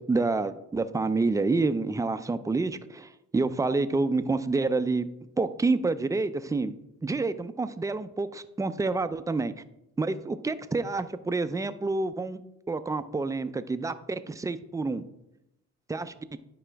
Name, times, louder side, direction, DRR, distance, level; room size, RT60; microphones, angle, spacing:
voice 1, 0.0-5.1 5.4-6.7 7.0-9.5 10.0-12.4 12.7-15.0 15.9-16.1, right 3 dB, 10° right, 11 dB, 0.4 m, -28 dB
9.7 x 4.9 x 3.4 m, 0.85 s
cardioid pair, 90°, 30 cm